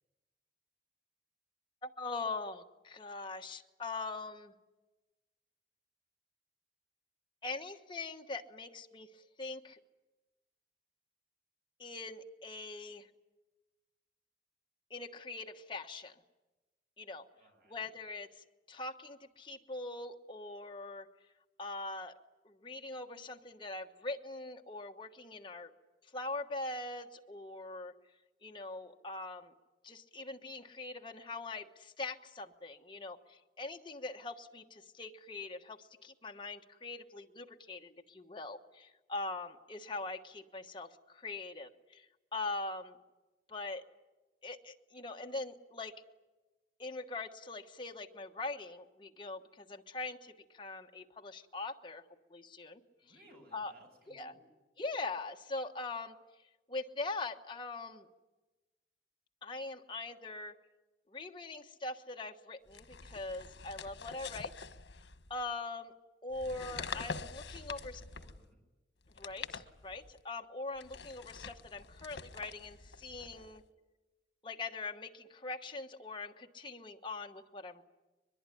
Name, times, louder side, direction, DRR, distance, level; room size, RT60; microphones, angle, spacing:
voice 1, 1.8-4.5 7.4-9.8 11.8-13.1 14.9-16.2 17.0-17.3 17.7-21.1 21.6-22.2 22.4-25.7 26.1-27.9 28.4-29.5 29.8-43.0 43.5-43.8 44.4-46.0 46.8-52.0 52.3-52.8 53.5-53.7 54.1-54.3 54.8-56.1 56.7-58.1 59.4-60.5 61.1-64.5 65.3-65.9 66.2-68.0 69.2-73.6 74.4-77.8, left 3 dB, 25° left, 3 dB, 1.3 m, -42 dB
voice 2, 17.3-17.9 53.0-54.5 67.4-68.6, right 1 dB, 60° right, 2 dB, 7.4 m, -62 dB
sound 1, 62.7-65.5 66.3-68.5 69.0-70.2 70.8-73.6, left 5 dB, 85° left, 1.2 m, -46 dB
23.0 x 22.0 x 10.0 m, 1.1 s
head